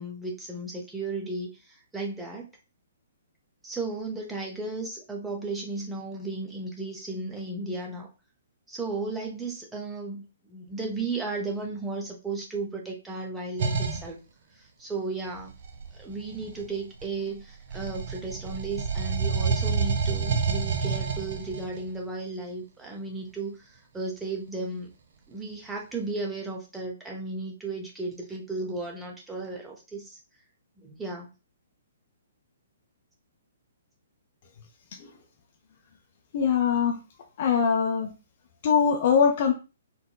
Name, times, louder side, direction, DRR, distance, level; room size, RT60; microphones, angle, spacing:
voice 1, 0.0-1.5 1.9-2.5 3.6-8.1 8.7-14.2 14.8-15.5 16.0-23.5 23.9-24.9 25.3-30.1 30.8-31.3, right 3 dB, 10° right, 0.7 m, -34 dB
sound 1, 13.6-14.1 15.4-17.3 17.7-21.8, right 5 dB, 50° right, 0.5 m, -28 dB
voice 2, 36.3-37.0 37.4-38.1 38.6-39.5, left 6 dB, 45° left, 0.5 m, -22 dB
3.7 x 2.1 x 2.2 m
figure-of-eight pair, 120°, 0 cm